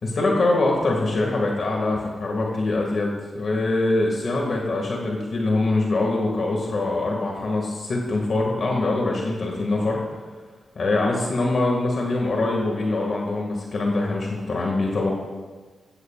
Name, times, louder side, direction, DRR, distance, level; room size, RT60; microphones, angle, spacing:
voice 1, 0.0-10.0 10.8-15.1, left 2 dB, 55° left, -1 dB, 2.0 m, -23 dB
16.0 x 15.0 x 2.5 m, 1.4 s
wide cardioid pair, 130°, 0 cm